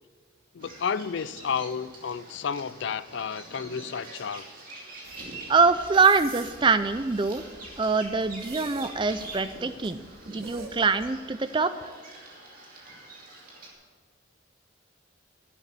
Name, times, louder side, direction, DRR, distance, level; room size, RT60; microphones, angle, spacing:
voice 1, 0.5-4.5, left 6 dB, 55° left, 16 dB, 0.4 m, -31 dB
Bird vocalization bird call bird song, 0.6-13.7, right 2 dB, 40° right, 2.6 m, -45 dB
sound 1, 5.0-11.1, right 3 dB, 85° right, 1.8 m, -48 dB
voice 2, 5.5-7.4 7.8-11.9, right 4 dB, 25° right, 12 dB, 0.4 m, -24 dB
11.0 x 8.1 x 8.3 m, 1.5 s
head